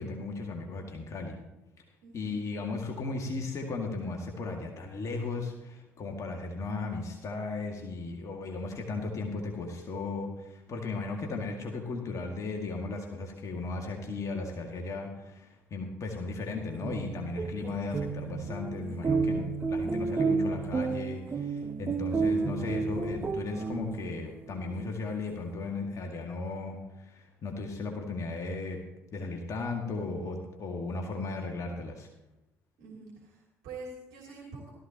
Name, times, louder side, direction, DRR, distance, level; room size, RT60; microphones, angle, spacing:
voice 1, 0.0-1.4 2.1-28.8 29.1-32.1, left 3 dB, 45° left, 2 dB, 2.1 m, -36 dB
voice 2, 2.0-2.4 10.7-11.1 32.8-34.7, right 3 dB, 65° right, -2 dB, 3.1 m, -46 dB
sound 1, 16.7-24.3, right 4 dB, 30° right, 0.9 m, -31 dB
17.0 x 13.5 x 2.9 m, 0.95 s
figure-of-eight pair, 55°, 7 cm